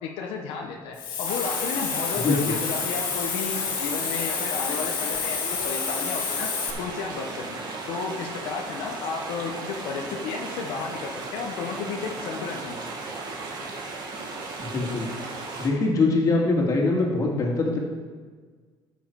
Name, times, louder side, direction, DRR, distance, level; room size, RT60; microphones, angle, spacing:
voice 1, 0.0-6.5 6.8-7.6 7.9-13.1, left 5 dB, 80° left, 1 dB, 1.0 m, -33 dB
Hiss, 0.9-6.7, left 7 dB, 60° left, 1.9 m, -29 dB
sound 1, 1.2-15.7, right 3 dB, 50° right, 1.9 m, -36 dB
voice 2, 2.2-2.5 14.6-15.1 15.6-17.8, left 3 dB, 40° left, -1 dB, 2.2 m, -23 dB
13.5 x 6.4 x 4.8 m, 1.5 s
cardioid pair, 125°, 9 cm